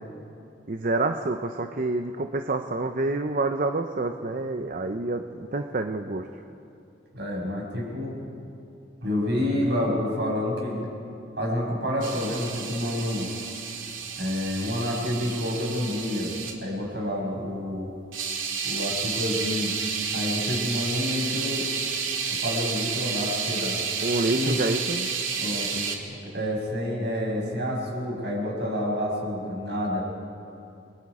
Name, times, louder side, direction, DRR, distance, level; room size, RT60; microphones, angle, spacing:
voice 1, 0.7-6.3 24.0-25.1, right 2 dB, 45° right, 6 dB, 0.7 m, -28 dB
voice 2, 7.1-8.2 9.0-10.9 11.4-13.3 14.2-16.3 16.6-17.9 18.6-19.7 20.1-21.7 22.3-23.8 24.3-24.6 25.4-30.0, left 1 dB, 60° right, -2 dB, 6.4 m, -28 dB
sound 1, 12.0-16.5 18.1-26.0, right 6 dB, 85° right, 2.4 m, -31 dB
29.5 x 22.5 x 4.9 m, 2.7 s
head